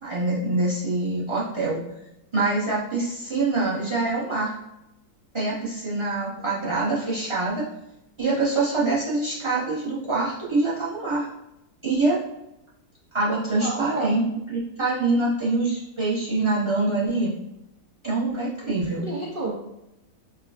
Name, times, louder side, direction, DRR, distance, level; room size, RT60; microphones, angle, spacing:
voice 1, 0.0-1.8 2.3-4.6 5.3-7.6 8.2-11.3 11.8-12.2 13.1-14.2 14.5-17.3 18.0-19.1, right 2 dB, 25° right, -9 dB, 0.8 m, -25 dB
voice 2, 13.6-14.1 19.0-19.5, right 2 dB, 75° right, -4 dB, 0.5 m, -30 dB
4.6 x 2.3 x 2.3 m, 0.88 s
omnidirectional pair, 1.6 m